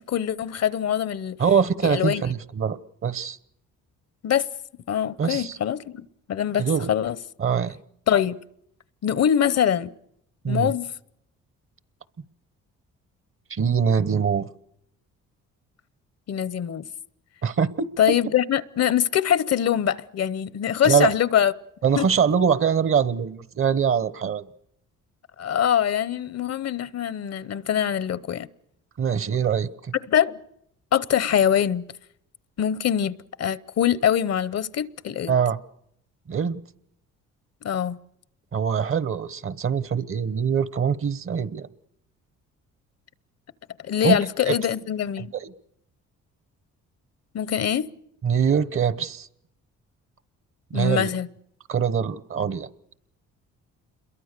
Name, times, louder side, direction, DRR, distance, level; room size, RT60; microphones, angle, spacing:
voice 1, 0.0-1.4 1.8-2.2 4.2-4.5 4.9-7.2 8.1-8.4 9.0-9.9 10.5-10.9 16.3-16.8 18.0-21.5 22.0-22.1 25.4-28.5 30.1-30.4 30.9-31.8 32.6-35.3 37.6-38.0 43.8-45.3 47.3-47.9 50.7-51.3, left 9 dB, 55° left, 0.8 m, -23 dB
voice 2, 1.4-3.4 5.2-5.6 6.6-6.9 7.4-7.8 10.4-10.7 13.5-14.5 17.4-17.9 20.8-21.1 21.8-24.4 29.0-29.9 35.3-35.6 36.3-36.6 38.5-41.7 44.0-44.2 44.5-44.6 45.2-45.5 48.2-49.3 50.7-51.1 51.7-52.7, right 7 dB, 45° right, 1.0 m, -23 dB
27.5 x 22.5 x 6.7 m
cardioid pair, 90°, 30 cm